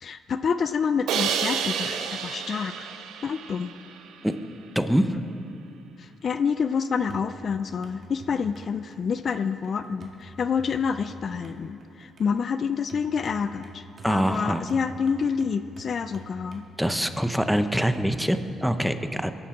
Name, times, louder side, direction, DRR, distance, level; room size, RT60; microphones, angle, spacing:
voice 1, 0.0-2.9 3.2-3.7 6.0-16.6, left 6 dB, 50° left, 11 dB, 0.4 m, -28 dB
Crash cymbal, 1.1-4.1, right 7 dB, 85° right, 0.8 m, -30 dB
voice 2, 4.7-5.2 14.0-14.6 16.8-19.3, equal, ahead, 9 dB, 0.7 m, -24 dB
sound 1, 7.0-18.5, right 1 dB, 50° right, 1.8 m, -48 dB
21.0 x 11.5 x 3.7 m, 2.8 s
cardioid pair, 90°, 0 cm